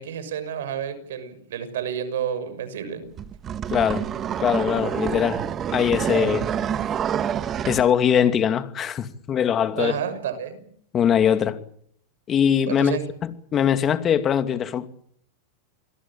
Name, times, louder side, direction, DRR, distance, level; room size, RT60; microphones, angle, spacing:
voice 1, 0.0-3.2 9.7-10.7 12.7-13.0, right 8 dB, 80° right, 6.4 m, -30 dB
sound 1, 3.2-7.9, right 9 dB, 30° right, 1.5 m, -27 dB
voice 2, 3.7-4.0 4.4-5.5 5.7-6.5 7.7-10.0 10.9-11.6 12.3-14.8, left 8 dB, 30° left, 2.6 m, -22 dB
28.5 x 21.5 x 7.5 m
supercardioid pair, 125°, 0 cm